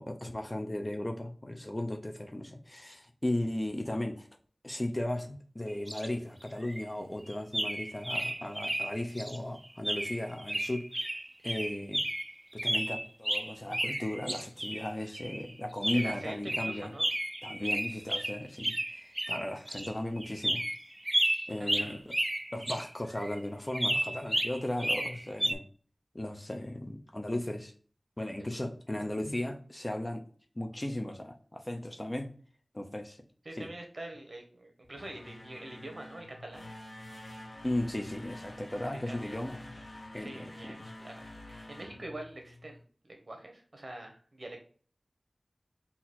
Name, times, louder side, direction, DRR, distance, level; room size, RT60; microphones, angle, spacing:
voice 1, 0.0-4.3 4.6-11.0 11.4-12.1 12.5-16.9 17.4-20.6 21.5-22.2 22.5-25.7 26.1-27.7 28.2-30.2 30.5-32.3 32.7-33.2 33.5-33.7 37.6-39.8 40.1-40.9, left 1 dB, 30° left, 5 dB, 0.7 m, -36 dB
sound 1, 5.7-6.1 6.4-6.8 7.3-9.4 9.8-15.5 15.8-22.9 23.2-23.4 23.7-25.5, right 1 dB, 25° right, 0.4 m, -33 dB
voice 2, 15.9-17.1 21.6-22.0 33.4-36.7 39.1-39.4 40.2-44.6, right 1 dB, 65° right, 3 dB, 1.1 m, -45 dB
sound 2, 34.8-42.8, left 1 dB, 70° left, 0.7 m, -48 dB
4.0 x 2.8 x 4.2 m, 0.44 s
wide cardioid pair, 55°, 0 cm